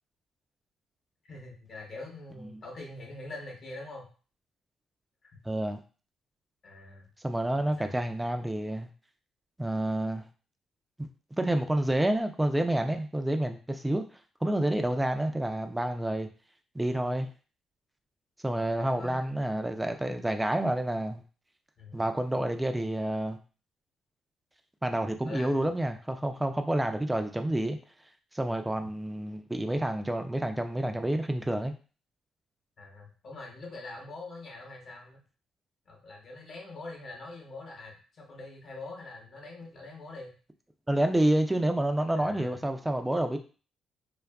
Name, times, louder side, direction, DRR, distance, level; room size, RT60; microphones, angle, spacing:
voice 1, 1.2-4.1 5.2-5.3 6.6-7.1 7.8-8.0 18.8-19.4 21.8-22.0 25.3-25.7 32.8-35.2 35.9-40.3 42.1-42.6, left 2 dB, 55° left, 0 dB, 0.8 m, -44 dB
voice 2, 5.5-5.8 7.2-8.9 9.6-10.2 11.0-11.1 11.4-14.0 14.4-16.3 16.7-17.3 18.4-21.2 21.9-23.4 24.8-27.8 28.3-31.7 40.9-43.4, right 1 dB, 10° right, 6 dB, 0.3 m, -29 dB
2.5 x 2.4 x 2.2 m, 0.37 s
cardioid pair, 90°, 0 cm